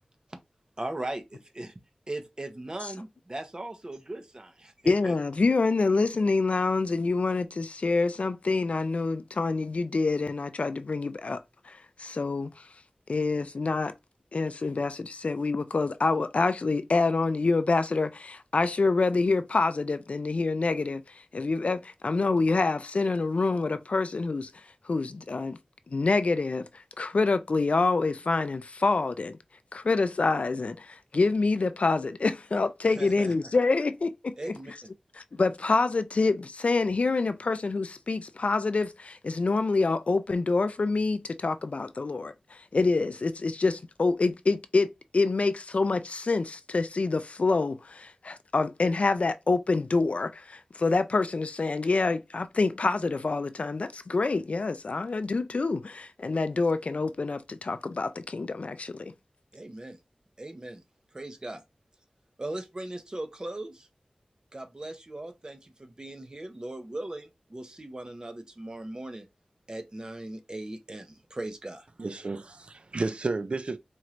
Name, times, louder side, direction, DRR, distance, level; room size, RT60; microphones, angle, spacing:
voice 1, 0.8-1.7 2.1-5.1 32.9-33.3 34.4-34.9 59.5-60.0 60.4-60.8 61.1-61.6 62.4-63.9 64.5-69.3 69.7-71.9, right 1 dB, 35° right, 0.8 m, -38 dB
voice 2, 4.9-11.4 11.7-12.6 13.1-13.9 14.3-21.0 21.3-24.5 24.8-25.6 25.9-26.7 27.0-29.4 29.7-34.3 35.1-59.1, left 3 dB, 65° left, 0.4 m, -26 dB
voice 3, 72.0-73.8, right 3 dB, 50° right, 0.4 m, -32 dB
4.2 x 3.1 x 2.5 m
wide cardioid pair, 75°, 2 cm